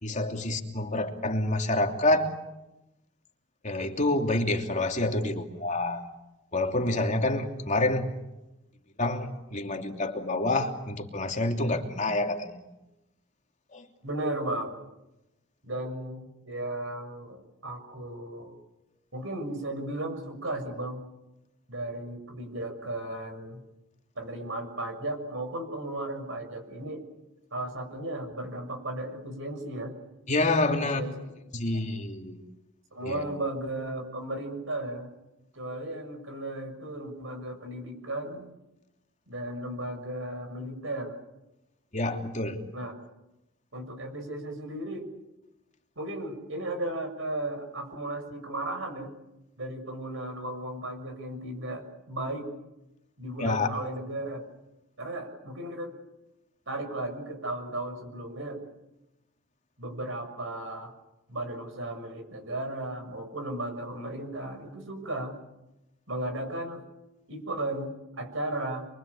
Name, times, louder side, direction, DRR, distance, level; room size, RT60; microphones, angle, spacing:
voice 1, 0.0-2.3 3.6-6.1 6.5-8.1 9.0-12.6 13.7-13.8 30.3-31.0 31.5-32.4 33.0-33.2 41.9-42.6 53.4-53.7, left 2 dB, 35° left, 3 dB, 3.0 m, -27 dB
voice 2, 14.0-14.8 15.6-18.6 19.1-21.0 21.7-23.6 24.2-27.0 27.5-29.9 30.8-31.1 32.9-35.1 35.5-38.5 39.3-41.2 42.7-42.9 43.7-45.1 46.0-49.1 49.6-52.5 53.2-54.4 55.0-55.9 56.7-58.6 59.8-60.9 61.3-65.3 66.1-66.8 67.3-68.9, right 1 dB, 65° right, 6 dB, 6.9 m, -35 dB
28.5 x 23.5 x 8.5 m, 0.96 s
head